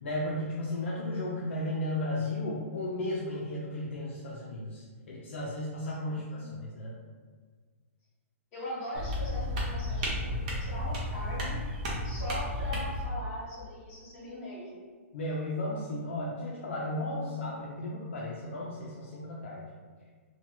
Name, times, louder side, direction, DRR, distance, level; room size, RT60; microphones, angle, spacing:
voice 1, 0.0-7.0 15.1-19.6, left 1 dB, 55° left, -4 dB, 0.4 m, -34 dB
voice 2, 6.1-6.6 8.5-11.6 12.0-14.8, equal, 20° left, -10 dB, 1.1 m, -40 dB
sound 1, 8.9-13.1, left 1 dB, 30° right, 0.6 m, -33 dB
2.8 x 2.2 x 2.9 m, 1.5 s
hypercardioid pair, 180°, 8 cm